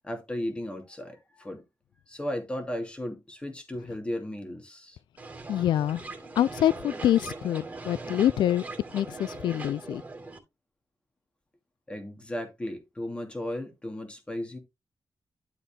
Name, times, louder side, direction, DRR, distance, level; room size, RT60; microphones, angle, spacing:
voice 1, 0.0-1.6 2.1-5.0 11.9-14.6, left 1 dB, 15° left, 2.6 m, -35 dB
sound 1, 5.2-10.4, right 3 dB, 20° right, 2.6 m, -40 dB
voice 2, 5.5-6.0 6.4-8.6 8.9-10.0, left 11 dB, 85° left, 0.3 m, -25 dB
12.0 x 4.1 x 3.7 m
cardioid pair, 115°, 8 cm